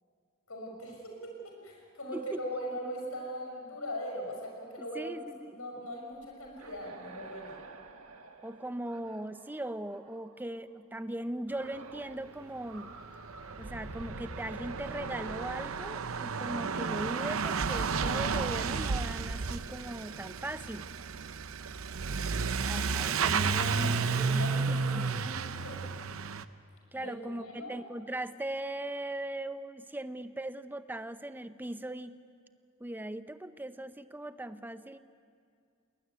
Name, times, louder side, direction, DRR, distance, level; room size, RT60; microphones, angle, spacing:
voice 1, 0.5-1.3 1.6-7.6 23.3-25.8 27.0-27.8, equal, 80° left, 1 dB, 6.4 m, -40 dB
voice 2, 2.1-2.4 4.9-5.6 8.4-12.9 13.6-20.9 22.6-25.2 26.9-32.1 32.8-35.0, right 1 dB, 10° right, 11 dB, 0.6 m, -39 dB
sound 1, 6.2-10.4 11.5-12.2 12.5-17.4, right 3 dB, 85° right, 1.5 m, -47 dB
Truck / Accelerating revving vroom, 12.8-12.9 13.0-26.4, right 5 dB, 70° right, 0.7 m, -32 dB
20.5 x 20.0 x 9.4 m, 2.2 s
head